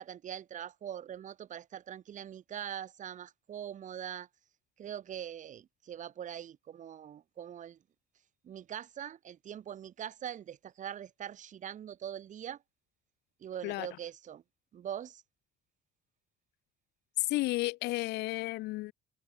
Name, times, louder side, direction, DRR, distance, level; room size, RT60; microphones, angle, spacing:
voice 1, 0.0-4.3 4.8-7.8 8.4-12.6 13.4-14.4 14.7-15.2, right 9 dB, 45° right, 1.4 m, -42 dB
voice 2, 17.2-18.9, left 19 dB, 85° left, 0.7 m, -32 dB
cardioid pair, 110°, 17 cm